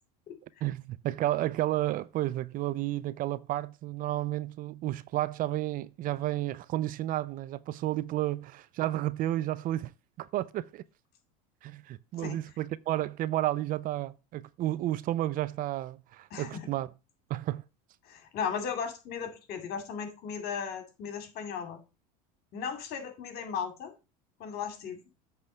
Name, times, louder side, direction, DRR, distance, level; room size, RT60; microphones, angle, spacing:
voice 1, 0.6-9.9 10.2-10.8 11.6-16.9 17.3-17.6, right 14 dB, 45° right, 0.5 m, -32 dB
voice 2, 18.1-21.8 22.5-23.9 24.4-25.0, left 7 dB, 55° left, 2.3 m, -36 dB
8.0 x 3.5 x 6.5 m
hypercardioid pair, 95°, 20 cm